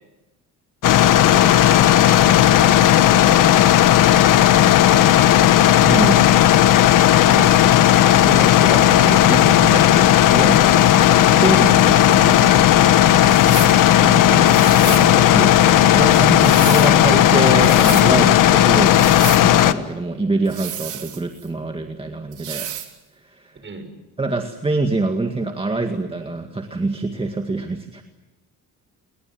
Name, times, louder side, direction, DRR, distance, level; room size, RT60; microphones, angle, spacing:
sound 1, 0.8-19.7, left 12 dB, 65° left, 1.5 m, -13 dB
voice 1, 1.1-3.5 4.6-5.4 13.5-13.8 23.6-23.9, right 4 dB, 35° right, 8 dB, 7.0 m, -36 dB
voice 2, 5.8-6.3 7.3-7.7 8.2-12.6 14.0-22.7 23.2-23.6 24.2-28.0, right 3 dB, 15° right, 5 dB, 2.0 m, -25 dB
sound 2, 13.2-13.8 14.5-15.1 16.1-16.9 17.5-18.1 18.9-19.5 20.5-21.5 22.3-22.9, right 10 dB, 60° right, 3.8 m, -32 dB
29.5 x 22.0 x 7.9 m, 1.1 s
cardioid pair, 125°, 34 cm